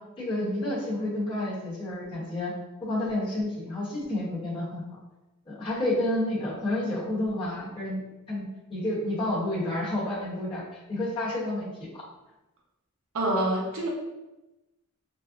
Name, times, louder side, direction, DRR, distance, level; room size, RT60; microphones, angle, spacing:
voice 1, 0.2-2.5 2.8-4.8 5.5-8.0 8.3-11.9, left 1 dB, 20° left, -8 dB, 0.9 m, -30 dB
voice 2, 13.1-13.9, right 1 dB, 65° right, -2 dB, 0.7 m, -26 dB
3.6 x 2.0 x 2.5 m, 1.0 s
head